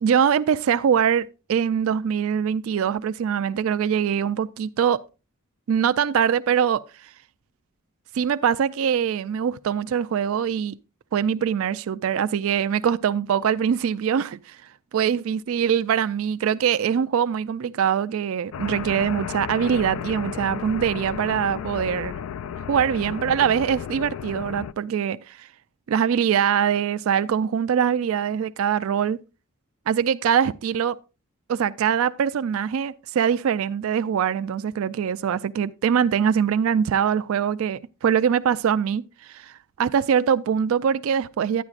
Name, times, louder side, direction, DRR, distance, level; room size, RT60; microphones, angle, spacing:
voice 1, 0.0-5.0 5.7-7.1 8.1-10.7 11.1-14.6 14.9-22.2 22.7-25.5 25.9-29.2 29.9-31.0 31.5-41.6, right 8 dB, 70° right, 0.3 m, -23 dB
sound 1, 18.5-24.7, left 8 dB, 80° left, 0.3 m, -33 dB
11.0 x 9.6 x 2.4 m
head